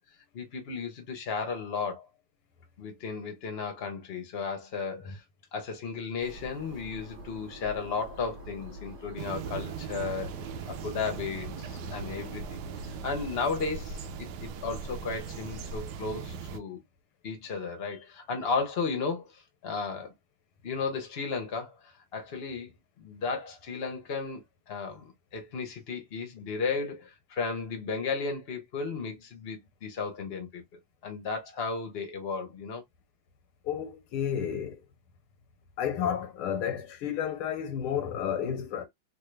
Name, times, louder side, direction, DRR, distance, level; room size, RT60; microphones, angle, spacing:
voice 1, 0.3-2.1 2.8-5.2 5.5-10.3 10.7-12.6 13.0-16.8 17.2-20.1 20.6-22.7 23.0-30.6 31.0-32.8, left 4 dB, 60° left, 0.6 m, -34 dB
sound 1, 6.2-12.3, right 1 dB, 50° right, 0.8 m, -46 dB
sound 2, 9.2-16.6, right 5 dB, 80° right, 0.9 m, -39 dB
voice 2, 33.6-34.8 35.8-38.9, left 8 dB, 90° left, 1.8 m, -31 dB
3.6 x 2.2 x 3.2 m
omnidirectional pair, 2.3 m